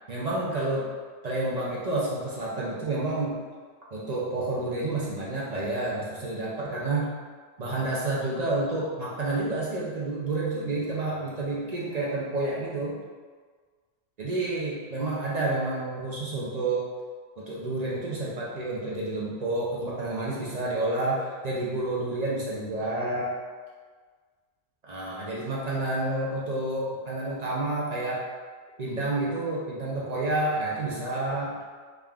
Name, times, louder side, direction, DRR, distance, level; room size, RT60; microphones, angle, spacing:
voice 1, 0.1-0.9 1.2-3.4 3.9-7.1 7.6-13.0 14.2-16.9 17.4-23.3 24.8-28.2 28.8-31.6, right 2 dB, 45° right, -6 dB, 0.5 m, -29 dB
3.7 x 3.5 x 2.4 m, 1.5 s
omnidirectional pair, 1.3 m